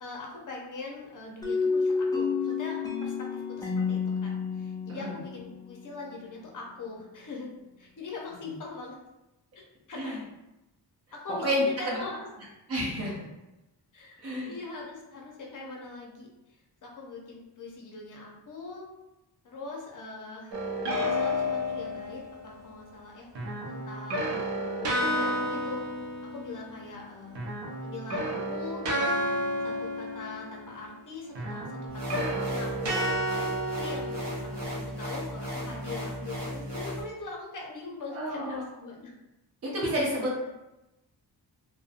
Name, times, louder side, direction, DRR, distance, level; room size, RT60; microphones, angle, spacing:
voice 1, 0.0-7.5 7.8-8.9 9.6-10.2 11.1-12.3 13.9-14.2 14.5-16.3 16.8-18.9 19.4-20.5 20.9-23.3 23.7-25.9 26.3-27.4 27.8-29.2 29.6-33.3 33.7-39.1 40.4-40.5, left 3 dB, 45° left, -1 dB, 0.6 m, -42 dB
sound 1, 1.4-6.1, left 5 dB, 10° left, 0.4 m, -30 dB
voice 2, 11.4-12.0 12.7-13.3 14.2-14.5 38.1-38.7 39.6-40.5, equal, 35° right, -5 dB, 0.7 m, -30 dB
sound 2, 20.5-22.4 23.3-27.0 27.3-30.9 31.3-34.8, equal, 80° right, 0.7 m, -31 dB
sound 3, 31.9-37.0, equal, 55° right, 1.0 m, -36 dB
2.5 x 2.1 x 2.4 m, 0.96 s
wide cardioid pair, 90°, 42 cm